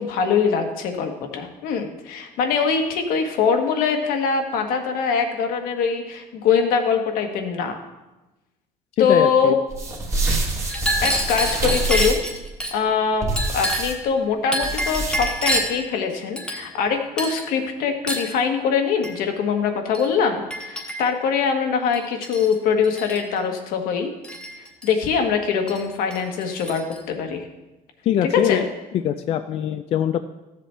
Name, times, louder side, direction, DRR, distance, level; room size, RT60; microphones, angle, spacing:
voice 1, 0.0-7.8 9.0-9.6 11.0-12.2 12.7-24.1 24.8-27.4 28.3-28.6, left 6 dB, 75° left, 4 dB, 1.4 m, -23 dB
voice 2, 9.0-9.5 28.0-28.6 29.0-30.2, left 10 dB, 40° left, 9 dB, 0.3 m, -22 dB
sound 1, 9.7-12.4 13.2-13.9 14.6-15.4, right 2 dB, 20° right, 1.3 m, -26 dB
Chink clink, 10.7-12.7 13.4-14.0 14.5-15.8 16.4-16.9 17.2-17.5 18.1-18.3 19.0-19.2 19.9-20.1 20.5-21.2 21.9-22.5 22.8-23.2 24.2-24.9 25.7-25.8 26.1-27.0, equal, 5° left, 1.3 m, -27 dB
14.5 x 7.5 x 3.3 m, 1.1 s
cardioid pair, 170°, 15 cm